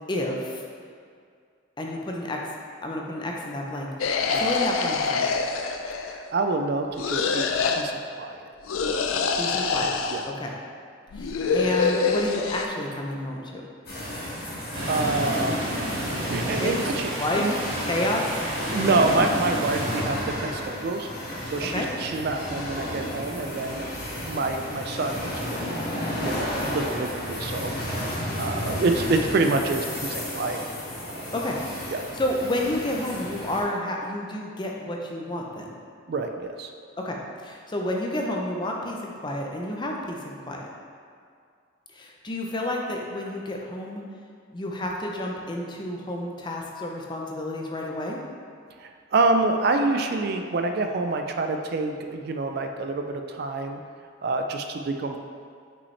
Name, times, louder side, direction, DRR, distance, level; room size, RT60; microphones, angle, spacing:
voice 1, 0.1-0.6 1.8-2.4 2.8-5.4 9.4-9.9 10.3-10.5 11.1-13.6 16.5-16.8 17.2-17.5 17.8-18.3 21.7-21.9 31.3-31.6 32.1-35.7 37.0-40.7 41.9-44.0 44.5-48.2, left 1 dB, 20° left, 0 dB, 0.5 m, -30 dB
sound 1, 4.0-6.3 7.0-7.8 8.7-10.3 11.1-12.7, left 5 dB, 85° left, 0.4 m, -25 dB
voice 2, 6.0-8.5 10.1-10.2 14.9-15.6 16.3-17.1 17.4-17.5 18.7-21.1 21.5-24.0 24.3-25.8 26.2-27.7 28.4-30.6 31.2-31.3 31.9-32.0 36.1-36.3 36.6-36.7 48.8-53.8 54.2-55.2, right 3 dB, 50° right, 5 dB, 0.3 m, -27 dB
sound 2, 13.9-33.6, left 1 dB, 50° left, 1.4 m, -32 dB
sound 3, 14.7-20.0, right 1 dB, 85° right, 1.3 m, -32 dB
5.5 x 5.4 x 3.2 m, 2.2 s
head